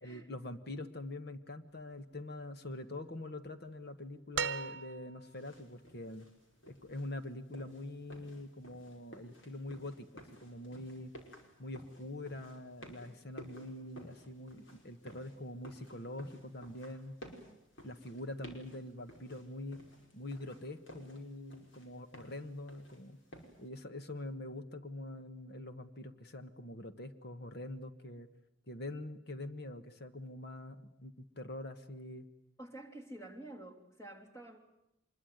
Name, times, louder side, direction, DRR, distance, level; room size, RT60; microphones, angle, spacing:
voice 1, 0.0-6.3 6.7-11.1 11.6-17.2 17.8-19.8 20.1-23.2 23.6-28.3 28.7-32.3, left 1 dB, 55° left, 10 dB, 1.5 m, -44 dB
sound 1, 4.3-5.4 6.9-7.0, right 7 dB, 60° right, 0.9 m, -38 dB
sound 2, 5.3-23.7, equal, 70° left, 5.5 m, -56 dB
voice 2, 32.6-34.6, right 1 dB, 15° left, 3 dB, 3.2 m, -49 dB
25.0 x 22.0 x 9.5 m, 0.84 s
head